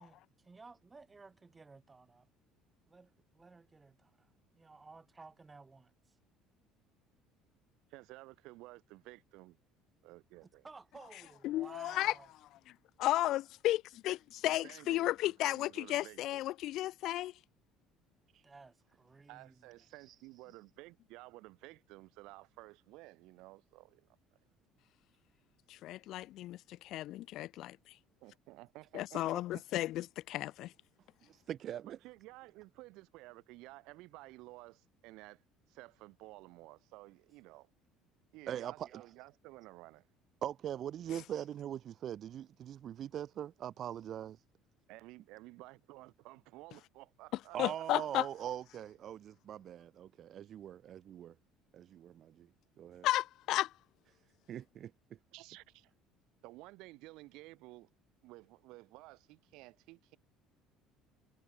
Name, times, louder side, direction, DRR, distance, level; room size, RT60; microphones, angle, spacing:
voice 1, 0.5-2.3 2.8-6.2 10.4-12.3 18.4-19.8, right 4 dB, 15° right, 3.9 m, -56 dB
voice 2, 7.9-9.6 10.0-10.6 14.5-16.4 19.3-24.1 28.2-29.9 31.9-35.4 35.7-37.7 38.3-40.1 44.9-47.8 55.3-55.9 56.4-57.9 58.2-60.2, right 21 dB, 65° right, 2.4 m, -54 dB
voice 3, 11.4-12.1 13.0-17.3 25.7-27.8 28.9-30.7 47.6-48.3 53.0-53.7, left 15 dB, 50° left, 0.4 m, -34 dB
voice 4, 31.3-32.0 38.5-39.1 40.4-44.4 47.5-51.3 51.7-52.5 52.8-53.1 54.5-54.9, right 10 dB, 35° right, 1.6 m, -42 dB
cardioid pair, 170°, 0 cm